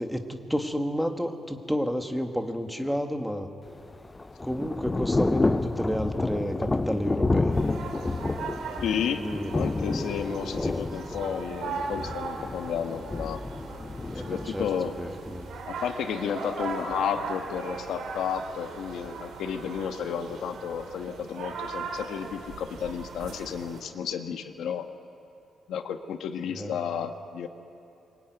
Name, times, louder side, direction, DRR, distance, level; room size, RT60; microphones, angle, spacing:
voice 1, 0.0-3.5 4.4-7.6 9.1-9.8 14.1-14.7 15.0-15.5 26.5-26.7, equal, ahead, 4 dB, 1.7 m, -30 dB
Thunder / Rain, 3.7-15.6, left 2 dB, 15° left, 0.6 m, -30 dB
sound 1, 7.5-23.8, right 4 dB, 75° right, 3.8 m, -39 dB
voice 2, 8.8-9.2 9.5-13.4 14.2-14.9 15.8-24.9 25.7-27.5, left 7 dB, 85° left, 6 dB, 1.6 m, -32 dB
24.0 x 23.0 x 9.3 m, 2.7 s
cardioid pair, 150°, 0 cm